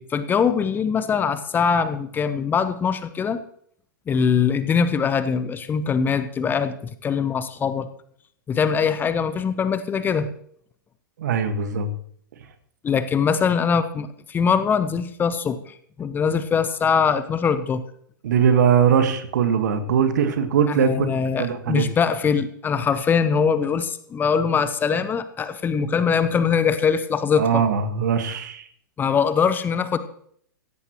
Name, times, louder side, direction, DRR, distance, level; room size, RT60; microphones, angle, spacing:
voice 1, 0.0-3.4 4.1-7.9 8.5-10.3 12.8-17.8 20.7-27.6 29.0-30.0, left 6 dB, 15° left, 12 dB, 0.9 m, -22 dB
voice 2, 11.2-11.9 18.2-21.1 21.4-21.8 27.4-28.7, right 7 dB, 60° right, 9 dB, 1.8 m, -20 dB
16.5 x 15.0 x 3.1 m, 0.63 s
figure-of-eight pair, 105°, 11 cm